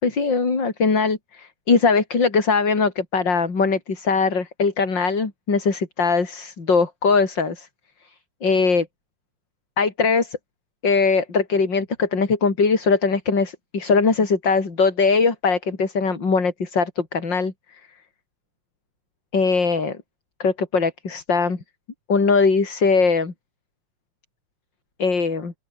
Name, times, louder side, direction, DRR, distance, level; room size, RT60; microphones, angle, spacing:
voice 1, 0.0-7.7 8.4-8.9 9.8-10.4 10.8-17.5 19.3-20.0 20.4-21.6 22.1-23.3 25.0-25.5, left 4 dB, 35° left, 4.1 m, -21 dB
open air
omnidirectional pair, 3.8 m